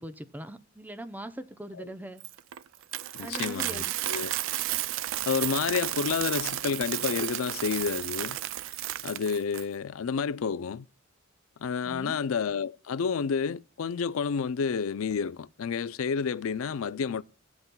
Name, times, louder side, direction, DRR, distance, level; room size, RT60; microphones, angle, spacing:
voice 1, 0.0-2.2 3.2-3.9 11.8-12.2, right 1 dB, 10° right, 0.6 m, -41 dB
Coin (dropping), 2.2-9.6, right 14 dB, 65° right, 0.3 m, -33 dB
voice 2, 3.1-4.3 5.3-8.4 9.0-10.9 11.6-17.2, left 6 dB, 80° left, 0.4 m, -30 dB
17.0 x 8.0 x 2.2 m
head